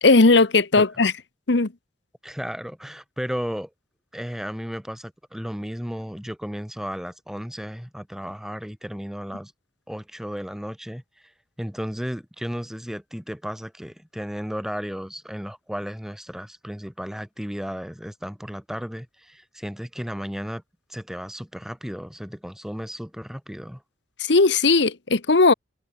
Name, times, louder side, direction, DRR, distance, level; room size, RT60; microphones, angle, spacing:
voice 1, 0.0-1.1 1.5-1.7 24.2-25.5, left 3 dB, 70° left, 1.1 m, -17 dB
voice 2, 2.2-3.7 4.1-9.5 9.9-11.0 11.6-20.6 20.9-23.8, equal, ahead, 1.7 m, -34 dB
head